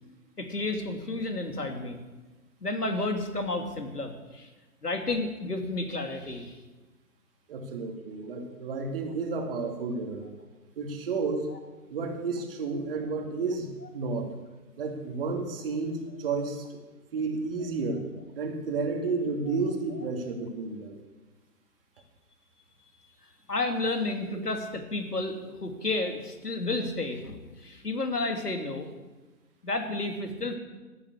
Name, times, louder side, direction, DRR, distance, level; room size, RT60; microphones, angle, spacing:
voice 1, 0.4-2.0 2.6-4.5 4.8-6.5 19.5-19.6 19.9-20.0 23.5-28.9 29.6-30.6, left 2 dB, 90° left, 5 dB, 2.8 m, -31 dB
voice 2, 7.5-10.3 10.8-11.5 11.9-13.7 13.9-14.3 14.8-16.8 17.1-18.1 18.3-21.0, right 4 dB, 35° right, 4 dB, 2.5 m, -31 dB
14.5 x 9.9 x 8.4 m, 1.2 s
figure-of-eight pair, 140°, 46 cm